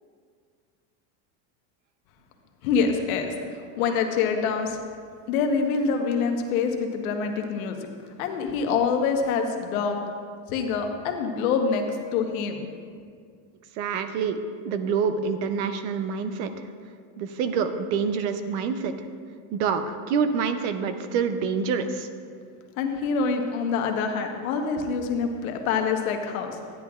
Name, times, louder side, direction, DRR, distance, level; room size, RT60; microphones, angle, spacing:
voice 1, 2.6-3.3 3.8-4.8 5.3-7.8 8.2-10.0 10.5-11.8 12.1-12.6 22.8-26.6, left 5 dB, 90° left, 4 dB, 1.2 m, -25 dB
voice 2, 13.8-16.7 17.2-18.9 19.5-22.1, right 6 dB, 55° right, 9 dB, 0.7 m, -27 dB
12.0 x 10.0 x 2.4 m, 2.1 s
cardioid pair, 175°, 41 cm